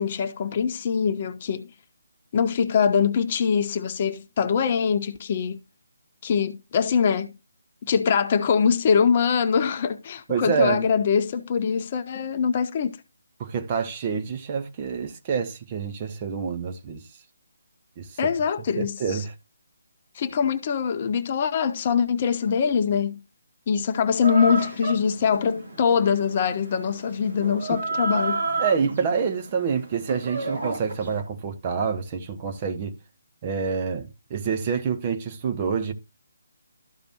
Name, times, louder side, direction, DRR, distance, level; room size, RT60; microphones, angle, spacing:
voice 1, 0.0-1.7 2.3-5.6 6.2-7.3 7.9-13.0 18.2-19.2 20.1-23.2 23.7-28.4, left 6 dB, 35° left, 0.6 m, -23 dB
voice 2, 10.3-10.8 13.4-17.0 18.0-18.3 18.8-19.3 27.7-27.8 28.6-32.9 33.4-35.9, right 6 dB, 25° right, 0.9 m, -27 dB
Chicken rooster, 24.2-31.2, right 3 dB, 55° right, 3.1 m, -32 dB
13.0 x 5.1 x 2.9 m
figure-of-eight pair, 145°, 0 cm